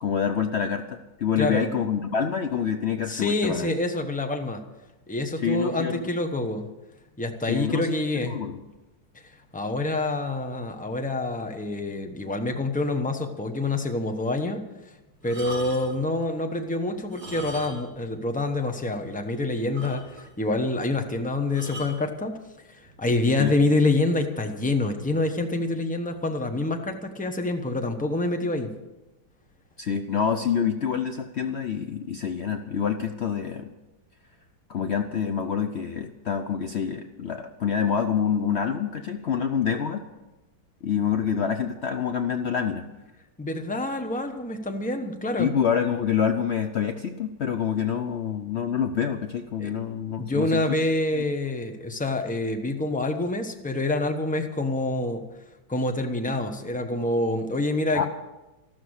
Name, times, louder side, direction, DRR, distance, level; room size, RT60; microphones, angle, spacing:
voice 1, 0.0-3.7 5.4-6.0 7.5-8.6 23.4-23.5 29.8-33.7 34.7-40.1 40.8-42.9 45.4-50.6 51.1-51.2 57.9-58.1, left 7 dB, 85° left, 7 dB, 0.6 m, -27 dB
voice 2, 1.4-1.7 3.1-4.6 5.1-6.7 7.2-8.4 9.5-14.6 15.2-22.4 22.7-28.7 43.4-45.5 49.6-49.7 50.2-55.2 55.7-58.1, left 2 dB, 5° left, 5 dB, 0.7 m, -27 dB
sound 1, 15.2-16.1 17.0-18.0 18.3-18.4 18.9-19.0 19.3-19.4 19.7-20.4 21.5-22.0 22.9-23.1, right 1 dB, 65° right, 4.6 m, -39 dB
14.0 x 12.5 x 6.4 m, 1.0 s
omnidirectional pair, 2.1 m